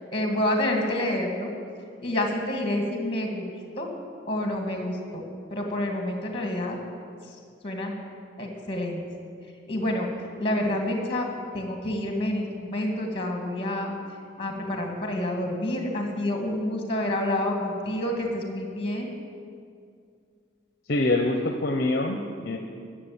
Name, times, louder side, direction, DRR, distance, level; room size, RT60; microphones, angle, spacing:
voice 1, 0.1-1.5 2.0-3.5 3.8-3.9 4.3-5.2 5.5-6.8 7.6-7.9 8.4-9.0 9.7-10.1 10.4-11.3 11.5-13.9 14.4-19.1, left 1 dB, 25° left, 2 dB, 2.1 m, -28 dB
voice 2, 20.9-22.6, left 2 dB, 50° left, 4 dB, 0.8 m, -25 dB
12.5 x 7.3 x 8.7 m, 2.3 s
head